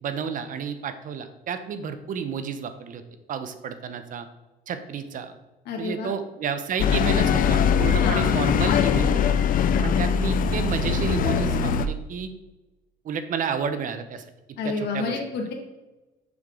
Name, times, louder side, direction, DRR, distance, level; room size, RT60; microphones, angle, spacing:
voice 1, 0.0-3.0 3.3-4.3 4.7-5.3 5.8-9.4 9.8-12.3 13.0-14.2 14.6-15.2, right 6 dB, 50° right, 10 dB, 0.8 m, -31 dB
voice 2, 5.7-6.1 8.0-8.4 14.6-15.5, left 4 dB, 75° left, 2 dB, 1.8 m, -29 dB
sound 1, 6.8-11.9, left 7 dB, 55° left, 0.5 m, -21 dB
7.1 x 6.5 x 3.8 m, 1.1 s
cardioid pair, 110°, 17 cm